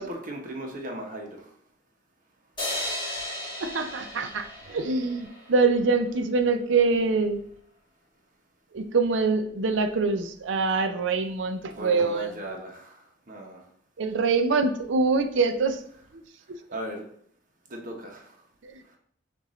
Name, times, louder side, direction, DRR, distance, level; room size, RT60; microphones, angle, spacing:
voice 1, 0.0-1.5 11.7-13.6 16.7-17.0 17.7-18.3, right 1 dB, 45° right, 1 dB, 0.9 m, -37 dB
sound 1, 2.6-5.9, left 1 dB, 25° left, 1.9 m, -35 dB
voice 2, 3.6-7.4 8.7-12.3 14.0-15.8 16.1-16.2 16.5-16.6 18.6-18.8, right 4 dB, 70° right, 7 dB, 0.5 m, -25 dB
6.5 x 2.6 x 3.1 m, 0.63 s
head